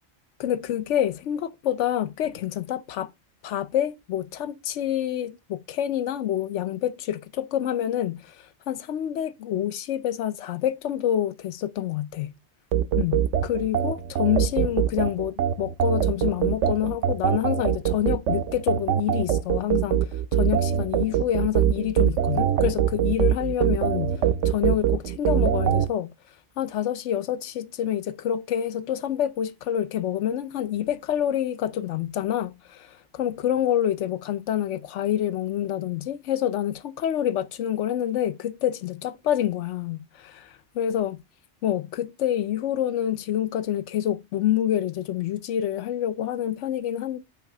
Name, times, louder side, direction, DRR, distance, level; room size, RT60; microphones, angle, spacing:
voice 1, 0.4-3.1 3.4-12.3 13.0-26.1 26.6-41.2 41.6-47.2, left 11 dB, 85° left, 1.0 m, -27 dB
sound 1, 12.7-25.9, right 10 dB, 85° right, 0.9 m, -23 dB
9.0 x 3.1 x 4.8 m
omnidirectional pair, 1.2 m